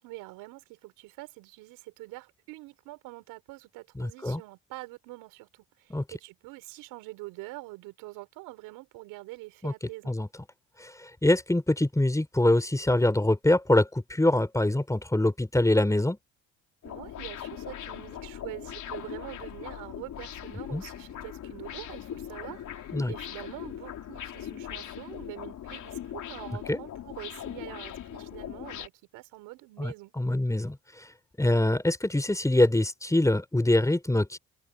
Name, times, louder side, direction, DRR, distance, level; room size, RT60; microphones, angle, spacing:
voice 1, 0.0-10.2 16.8-30.1, right 21 dB, 85° right, 6.0 m, -45 dB
voice 2, 4.0-4.4 5.9-6.0 9.6-9.7 10.1-10.3 10.8-16.2 20.7-20.8 22.9-23.1 26.7-26.8 29.8-31.1 31.4-34.4, left 1 dB, 10° left, 3.8 m, -24 dB
sound 1, 16.8-28.9, left 10 dB, 60° left, 3.7 m, -40 dB
open air
supercardioid pair, 70°, 33 cm